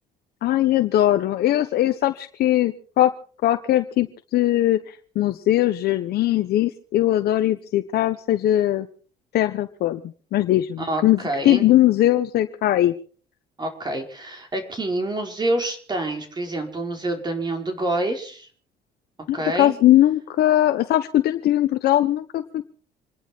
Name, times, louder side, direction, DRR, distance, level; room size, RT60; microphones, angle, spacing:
voice 1, 0.4-3.1 3.4-8.9 9.3-10.0 10.3-12.9 19.3-22.4, left 13 dB, 70° left, 8 dB, 1.1 m, -20 dB
voice 2, 10.8-11.6 13.6-18.5 19.3-19.7, right 2 dB, 25° right, 3 dB, 4.7 m, -27 dB
27.0 x 11.0 x 4.6 m, 0.43 s
cardioid pair, 110°, 17 cm